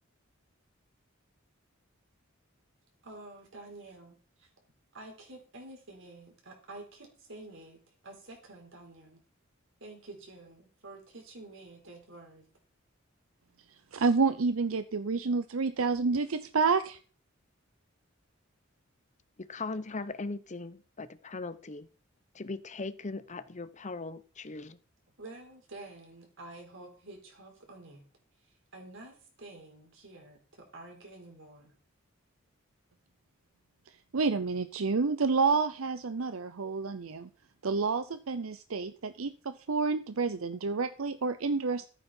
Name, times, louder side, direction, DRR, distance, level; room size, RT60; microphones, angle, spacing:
voice 1, 3.0-4.5 4.9-9.2 9.8-12.4 25.2-28.0 28.7-31.7, right 2 dB, 70° right, 2 dB, 4.7 m, -49 dB
voice 2, 13.9-17.0 34.1-37.3 37.6-41.9, right 4 dB, 85° right, 12 dB, 0.7 m, -29 dB
voice 3, 19.4-21.9 22.3-24.8, left 3 dB, 35° left, 13 dB, 0.8 m, -39 dB
14.0 x 9.2 x 4.5 m, 0.41 s
head